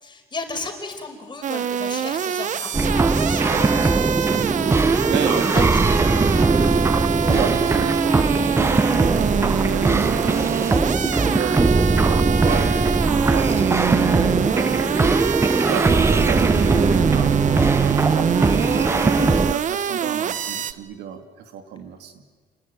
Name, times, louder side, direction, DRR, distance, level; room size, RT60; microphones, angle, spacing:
voice 1, 0.0-4.3 5.5-5.7 6.0-6.1 17.9-18.2, left 4 dB, 25° left, 5 dB, 5.0 m, -35 dB
sound 1, 1.4-20.7, right 8 dB, 45° right, 1.0 m, -25 dB
sound 2, 2.7-19.5, right 3 dB, 15° right, 0.7 m, -20 dB
voice 2, 3.5-5.7 6.2-15.2 15.4-22.2, right 8 dB, 80° right, 6 dB, 2.8 m, -32 dB
29.0 x 21.0 x 9.2 m, 1.5 s
cardioid pair, 110°, 17 cm